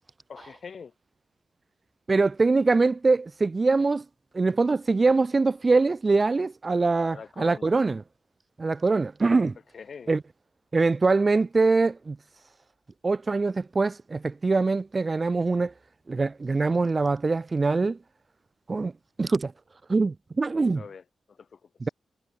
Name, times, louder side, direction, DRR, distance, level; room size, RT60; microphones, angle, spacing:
voice 1, 0.3-0.9 7.1-7.7 9.7-10.1 20.7-21.7, left 6 dB, 50° left, 7.4 m, -43 dB
voice 2, 2.1-4.0 4.3-8.0 8.6-9.5 10.1-10.2 10.7-12.2 13.0-15.7 16.1-18.0 18.7-18.9 19.2-19.5 19.9-20.8 21.8-21.9, right 3 dB, 30° right, 0.5 m, -23 dB
wide cardioid pair, 130°, 0 cm